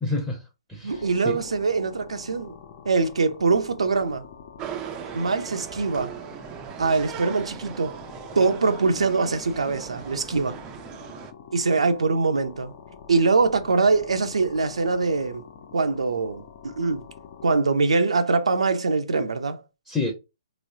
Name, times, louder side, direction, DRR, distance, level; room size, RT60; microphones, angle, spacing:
voice 1, 0.0-1.4 19.9-20.1, left 3 dB, 5° left, 0.7 m, -29 dB
voice 2, 0.8-2.5 2.9-4.2 5.1-6.1 6.8-8.0 8.4-10.6 11.5-12.7 13.1-15.4 15.7-17.0 17.4-19.6, right 4 dB, 85° right, 0.5 m, -23 dB
sound 1, 0.9-17.6, left 7 dB, 40° left, 0.6 m, -46 dB
sound 2, 4.6-11.3, right 10 dB, 20° right, 0.4 m, -38 dB
3.1 x 3.0 x 2.6 m
hypercardioid pair, 140°, 3 cm